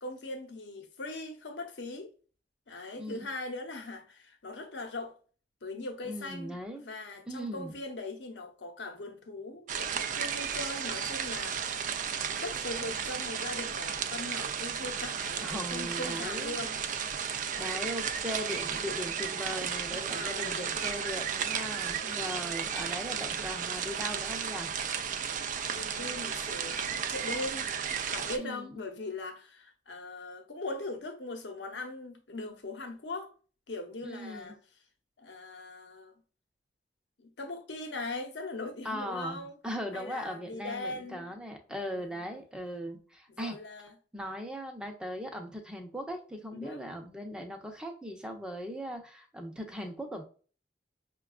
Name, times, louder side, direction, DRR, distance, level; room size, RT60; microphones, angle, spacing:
voice 1, 0.0-2.1 2.7-5.2 5.6-11.8 12.4-16.8 19.9-21.4 22.0-22.7 25.7-27.7 28.1-33.3 33.7-34.6 35.2-36.2 37.2-39.5 39.9-41.3 41.7-42.3 43.3-43.9 46.5-46.8, left 2 dB, 85° left, 0.8 m, -40 dB
voice 2, 3.0-3.3 6.0-6.9 7.3-7.8 15.4-16.6 17.6-24.7 28.4-28.7 34.0-34.5 38.8-43.6 44.1-50.2, equal, 5° right, 0.7 m, -39 dB
sound 1, 9.7-28.4, right 7 dB, 45° right, 0.4 m, -34 dB
5.7 x 2.3 x 2.3 m
head